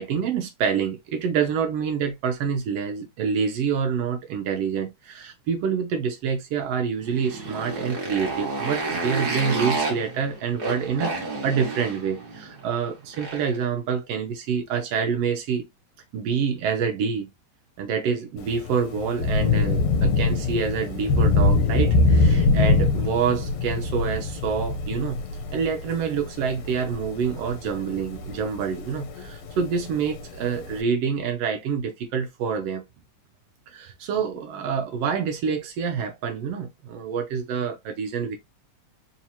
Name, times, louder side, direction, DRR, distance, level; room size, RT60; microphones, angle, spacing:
voice 1, 0.0-11.1 11.4-15.7 16.1-17.3 17.8-25.2 25.5-32.8 33.7-38.4, right 6 dB, 75° right, 1.5 m, -27 dB
Motorcycle, 7.0-13.6, right 3 dB, 45° right, 1.4 m, -30 dB
Thunder / Rain, 18.4-30.8, left 3 dB, 75° left, 2.1 m, -24 dB
4.7 x 2.9 x 2.7 m
omnidirectional pair, 3.5 m